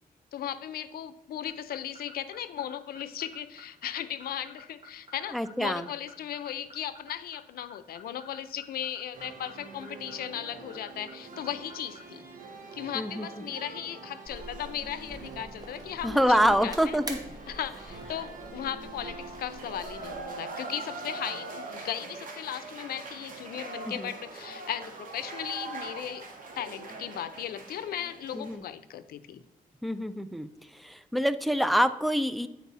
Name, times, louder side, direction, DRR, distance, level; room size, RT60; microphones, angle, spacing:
voice 1, 0.3-12.2 12.7-17.0 17.5-26.3 26.6-29.4, left 10 dB, 85° left, 13 dB, 0.5 m, -37 dB
sound 1, 1.5-12.0, right 2 dB, 40° right, 2.1 m, -50 dB
voice 2, 5.3-5.9 12.9-13.3 16.0-17.2 24.0-24.1 28.3-28.6 29.8-30.5 30.7-32.5, equal, ahead, 12 dB, 0.3 m, -26 dB
sound 2, 9.1-28.6, right 3 dB, 65° right, 1.4 m, -43 dB
sound 3, 14.3-20.2, right 1 dB, 25° right, 1.0 m, -45 dB
8.3 x 4.6 x 4.0 m, 0.95 s
cardioid pair, 115°, 15 cm